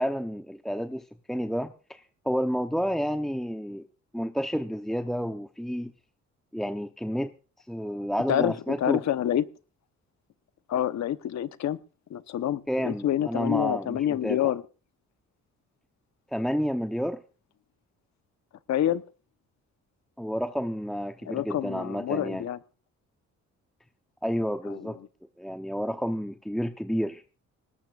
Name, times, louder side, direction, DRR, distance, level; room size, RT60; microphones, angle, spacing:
voice 1, 0.0-3.8 4.1-5.9 6.5-7.3 7.7-9.0 12.7-14.5 16.3-17.2 20.2-22.4 24.2-25.0 25.4-27.2, equal, ahead, 7 dB, 0.8 m, -30 dB
voice 2, 8.3-9.5 10.7-11.8 12.1-14.6 18.7-19.0 21.2-22.6 24.6-24.9, left 11 dB, 65° left, 12 dB, 1.0 m, -27 dB
19.5 x 18.0 x 2.5 m, 0.35 s
cardioid pair, 90°, 30 cm